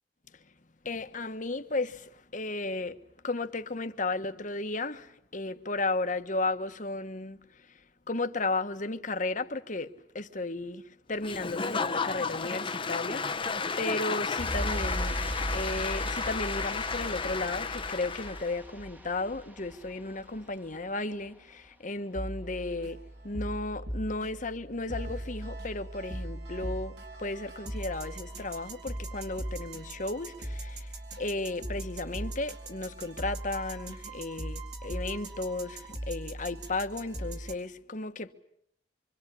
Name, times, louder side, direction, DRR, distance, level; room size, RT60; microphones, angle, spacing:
voice 1, 0.8-3.0 3.2-7.8 8.1-38.3, left 2 dB, 45° left, 1.5 m, -34 dB
Applause / Crowd, 11.2-18.5, left 5 dB, 30° left, 1.0 m, -33 dB
sound 1, 14.4-20.9 21.1-21.3, equal, 10° right, 1.5 m, -38 dB
sound 2, 22.1-37.5, right 1 dB, 65° right, 4.4 m, -39 dB
26.5 x 25.0 x 8.5 m
head